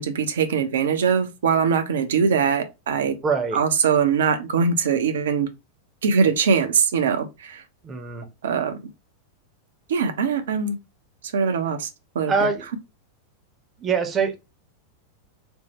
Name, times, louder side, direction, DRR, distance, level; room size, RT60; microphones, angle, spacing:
voice 1, 0.0-3.2 3.5-5.5 6.0-7.6 8.4-8.8 9.9-10.8 11.3-11.9 12.2-12.3, right 6 dB, 60° right, 0.5 m, -22 dB
voice 2, 3.2-3.6 7.8-8.3 12.3-12.6 13.8-14.3, right 5 dB, 25° right, 0.7 m, -23 dB
3.5 x 2.0 x 2.8 m
figure-of-eight pair, 90°, 0 cm